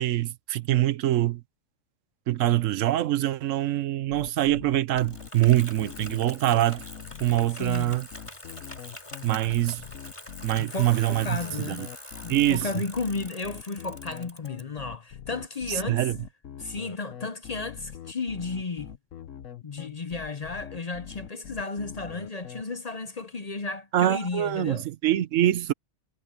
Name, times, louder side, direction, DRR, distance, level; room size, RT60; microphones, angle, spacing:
voice 1, 0.0-1.4 2.3-6.8 7.2-8.1 9.2-9.8 10.4-11.4 11.7-11.9 12.3-12.7 15.9-16.2 23.9-25.7, right 14 dB, 90° right, 1.0 m, -24 dB
sound 1, 4.1-22.6, left 8 dB, 85° left, 1.3 m, -43 dB
Bicycle, 5.0-14.6, left 1 dB, 25° left, 3.7 m, -44 dB
voice 2, 7.5-7.9 10.6-16.1 16.6-18.9 19.6-24.9, left 3 dB, 40° left, 0.7 m, -34 dB
omnidirectional pair, 1.3 m